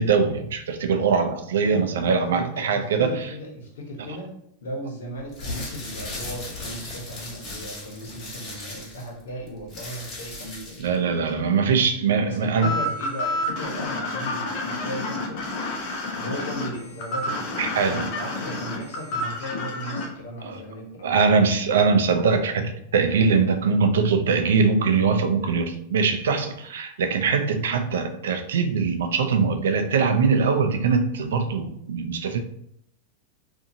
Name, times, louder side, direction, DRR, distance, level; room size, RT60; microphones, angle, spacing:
voice 1, 0.0-3.1 10.8-12.7 17.6-18.1 20.4-20.6 21.0-32.4, right 5 dB, 90° right, 0.4 m, -22 dB
voice 2, 1.6-4.3 4.6-11.6 12.2-15.4 16.2-21.4, equal, 90° left, 1.0 m, -36 dB
sound 1, 5.3-11.0, left 2 dB, 30° left, 1.3 m, -37 dB
sound 2, 12.6-20.1, left 2 dB, 50° left, 0.7 m, -29 dB
2.6 x 2.6 x 2.6 m
supercardioid pair, 135°, 0 cm